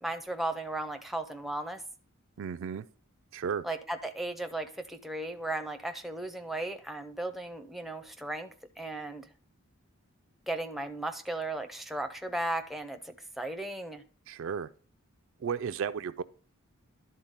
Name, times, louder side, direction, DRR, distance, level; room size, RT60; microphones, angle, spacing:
voice 1, 0.0-1.8 3.6-8.5 8.8-9.3 10.5-14.0, right 2 dB, ahead, 0.5 m, -36 dB
voice 2, 2.4-2.8 3.3-3.6 14.3-14.7 15.4-16.2, right 7 dB, 65° right, 0.3 m, -33 dB
11.5 x 3.9 x 3.9 m
head